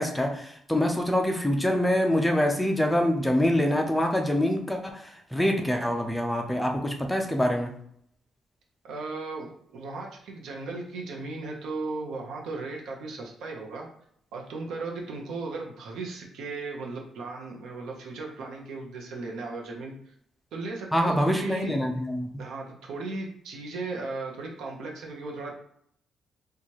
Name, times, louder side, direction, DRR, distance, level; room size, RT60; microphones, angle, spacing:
voice 1, 0.0-7.7 20.9-22.3, left 1 dB, 5° left, 3 dB, 0.4 m, -25 dB
voice 2, 8.8-13.9 14.3-20.1 20.5-21.8 22.4-25.5, right 3 dB, 90° right, 0 dB, 0.7 m, -36 dB
4.5 x 2.4 x 2.9 m, 0.69 s
cardioid pair, 150°, 0 cm